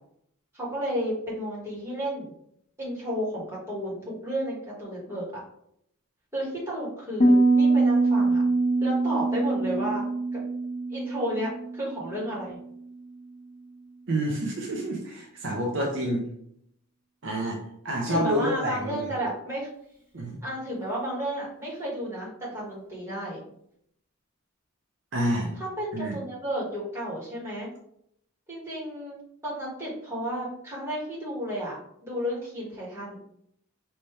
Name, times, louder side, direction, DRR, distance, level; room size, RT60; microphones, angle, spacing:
voice 1, 0.5-2.3 2.8-5.4 6.3-8.4 8.8-10.1 10.3-10.4 10.9-12.6 18.1-19.7 20.4-23.4 25.6-27.7 28.5-29.2 29.4-33.2, equal, 10° right, -7 dB, 1.9 m, -32 dB
Piano, 7.2-12.8, right 2 dB, 25° left, 0.8 m, -24 dB
voice 2, 14.1-16.3 17.2-17.6 17.8-19.1 20.1-20.4 25.1-25.5 25.9-26.2, right 1 dB, 60° right, 0 dB, 0.8 m, -28 dB
5.4 x 2.9 x 3.3 m, 0.72 s
head